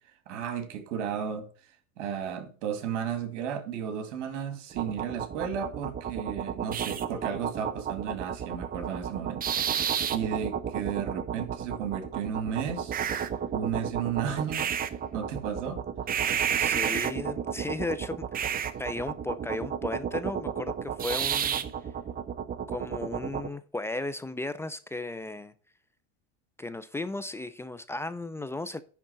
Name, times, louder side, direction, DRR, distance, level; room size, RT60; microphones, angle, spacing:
voice 1, 0.3-1.5 2.0-9.4 9.7-13.0 13.5-14.7 15.1-15.8, right 8 dB, 75° right, 2.3 m, -33 dB
sound 1, 4.7-23.5, right 8 dB, 25° right, 0.7 m, -31 dB
voice 2, 16.6-18.4 18.8-21.6 22.7-25.5 26.6-28.8, left 2 dB, 10° left, 0.3 m, -35 dB
10.0 x 3.6 x 6.8 m
supercardioid pair, 120°, 36 cm